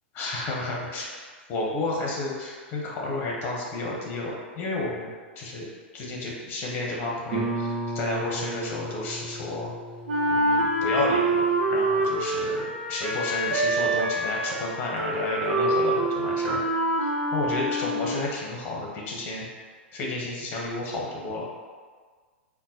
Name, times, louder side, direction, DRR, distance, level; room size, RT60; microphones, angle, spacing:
voice 1, 0.2-1.1 1.5-5.1 5.4-5.6 5.9-9.7 10.3-12.6 12.9-16.7 17.0-19.5 19.9-21.4, left 2 dB, 35° left, -3 dB, 0.9 m, -31 dB
Guitar, 7.3-12.7, right 1 dB, 15° right, 1.0 m, -35 dB
Wind instrument woodwind instrument, 10.1-18.2, right 1 dB, 70° right, 0.6 m, -26 dB
3.7 x 2.2 x 2.8 m, 1.6 s
figure-of-eight pair, 105°, 6 cm